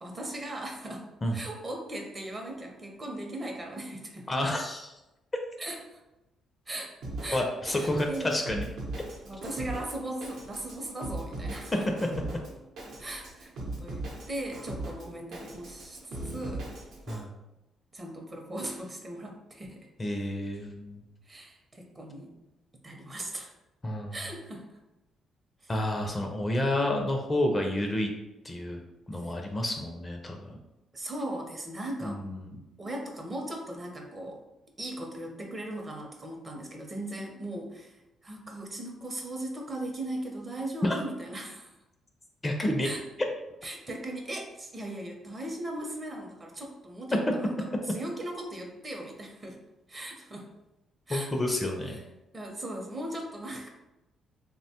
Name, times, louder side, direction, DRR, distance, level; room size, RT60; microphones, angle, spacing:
voice 1, 0.0-1.1 1.3-4.3 5.6-6.0 6.7-6.9 7.2-7.4 7.7-8.3 9.3-11.9 13.0-13.5 13.8-16.7 17.9-19.9 21.2-22.3 22.8-23.5 24.1-24.8 25.6-25.7 29.2-29.3 30.9-32.2 32.8-34.4 34.8-41.7 42.8-43.0 43.6-47.5 47.9-49.6 49.9-50.5 51.1-51.3 51.9-52.0 52.3-53.7, right 1 dB, 30° right, 1 dB, 0.6 m, -38 dB
voice 2, 4.3-4.9 7.3-8.7 17.1-17.3 20.0-21.0 23.8-24.2 25.7-28.1 28.4-28.8 29.1-30.6 32.0-32.6 40.8-41.0 42.4-42.9 51.1-52.0, left 1 dB, 20° left, 2 dB, 0.4 m, -29 dB
Drum kit, 7.0-17.2, right 2 dB, 80° right, 0.7 m, -39 dB
3.0 x 2.1 x 2.8 m, 0.96 s
cardioid pair, 90°, 0 cm